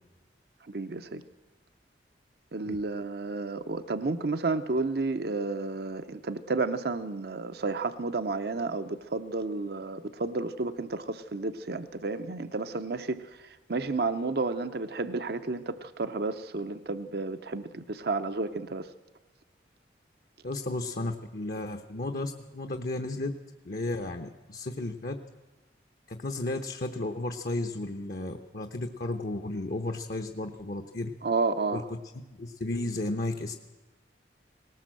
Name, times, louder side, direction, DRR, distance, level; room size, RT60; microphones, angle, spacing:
voice 1, 0.7-1.2 2.5-18.9 31.2-31.8, right 3 dB, 60° right, 10 dB, 0.7 m, -31 dB
voice 2, 20.4-23.3 23.6-25.2 26.1-31.1 31.7-32.0 32.3-33.5, left 2 dB, 50° left, 6 dB, 0.9 m, -33 dB
19.0 x 18.0 x 7.6 m, 1.2 s
head